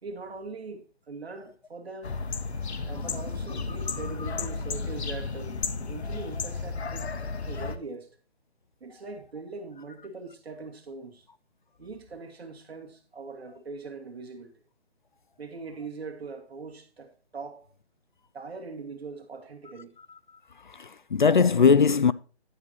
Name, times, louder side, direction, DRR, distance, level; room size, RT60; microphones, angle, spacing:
voice 1, 0.0-2.2 2.9-7.1 7.5-8.1 8.8-11.3 11.8-14.5 15.4-17.7 18.3-19.9, right 4 dB, 65° right, 2.4 m, -41 dB
sound 1, 2.0-7.8, left 4 dB, 75° left, 1.3 m, -33 dB
voice 2, 20.7-22.1, left 5 dB, 50° left, 0.4 m, -20 dB
11.0 x 9.7 x 3.0 m
hypercardioid pair, 170°, 33 cm